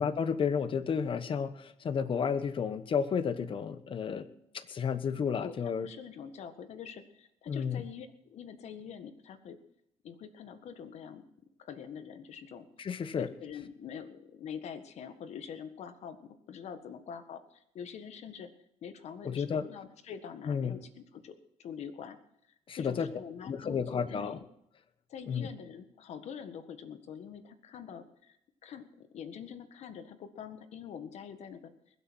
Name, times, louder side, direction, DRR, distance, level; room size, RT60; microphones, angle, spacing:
voice 1, 0.0-4.3 4.5-5.9 7.5-7.8 12.8-13.3 19.2-19.6 20.5-20.8 22.7-23.1 23.4-24.4 25.3-25.5, left 6 dB, 45° left, 11 dB, 1.2 m, -32 dB
voice 2, 5.4-9.6 10.0-11.2 11.6-12.7 13.1-18.5 18.8-22.2 22.7-24.4 25.1-28.4 28.6-31.7, left 7 dB, 70° left, 10 dB, 1.6 m, -45 dB
21.5 x 8.1 x 6.3 m, 0.76 s
cardioid pair, 95°, 12 cm